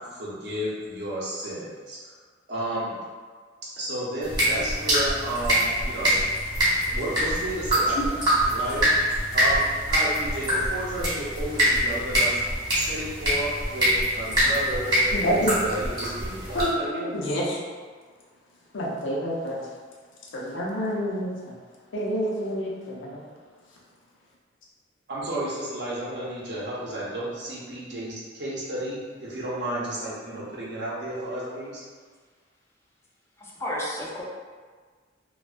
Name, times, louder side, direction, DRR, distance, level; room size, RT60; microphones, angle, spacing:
voice 1, 0.1-2.1 2.5-3.0 3.6-6.2 6.9-8.2 8.4-8.9 9.3-12.3 12.7-14.9 15.2-17.0 25.1-31.8, right 1 dB, 60° right, -7 dB, 0.7 m, -32 dB
sound 1, 4.2-16.7, equal, 20° right, 0.8 m, -24 dB
voice 2, 15.1-15.6 16.5-17.6 18.7-19.7 20.3-21.5 21.9-23.2, equal, 85° left, -3 dB, 0.5 m, -28 dB
voice 3, 33.4-34.2, equal, 15° left, -5 dB, 0.3 m, -32 dB
2.3 x 2.2 x 2.4 m, 1.5 s
head